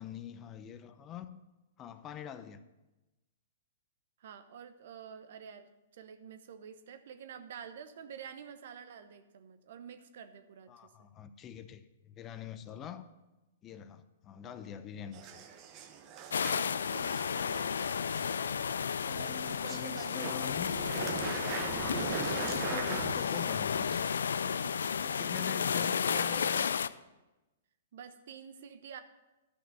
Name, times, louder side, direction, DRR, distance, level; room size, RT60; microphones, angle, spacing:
voice 1, 0.0-1.4 1.8-2.6 10.7-13.1 13.6-15.4 19.0-20.8 21.2-22.0 22.4-24.1 25.0-26.8, left 9 dB, 25° left, 12 dB, 0.6 m, -45 dB
voice 2, 4.2-10.9 16.5-18.1 19.1-20.5 25.8-26.5 27.9-29.0, right 7 dB, 60° right, 10 dB, 1.0 m, -49 dB
sound 1, 15.1-25.0, right 7 dB, 35° right, 1.0 m, -42 dB
sound 2, 16.3-26.9, left 7 dB, 75° left, 0.4 m, -32 dB
12.0 x 5.9 x 6.9 m, 1.1 s
hypercardioid pair, 120°, 0 cm